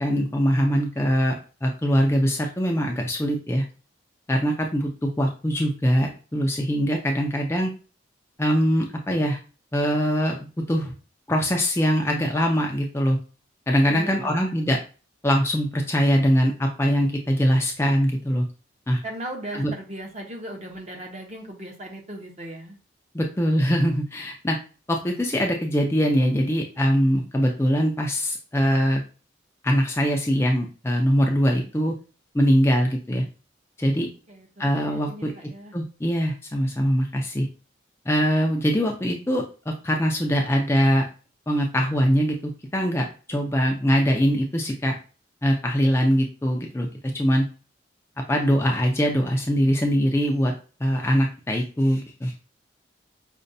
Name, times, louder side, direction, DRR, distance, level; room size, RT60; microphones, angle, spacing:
voice 1, 0.0-3.6 4.3-7.7 8.4-9.4 9.7-10.9 11.3-13.2 13.7-14.8 15.2-18.5 18.9-19.0 19.6-19.7 23.1-24.6 24.9-29.0 29.6-31.9 32.3-33.2 33.8-34.1 34.6-35.3 35.7-37.5 38.1-41.0 41.5-42.4 42.7-44.9 45.4-46.9 47.1-47.4 48.3-50.5 50.8-52.3, equal, 15° left, 1 dB, 0.4 m, -22 dB
voice 2, 13.9-14.6 19.0-22.8 34.3-35.7, right 1 dB, 35° right, 2 dB, 0.7 m, -38 dB
5.1 x 2.1 x 2.6 m, 0.34 s
head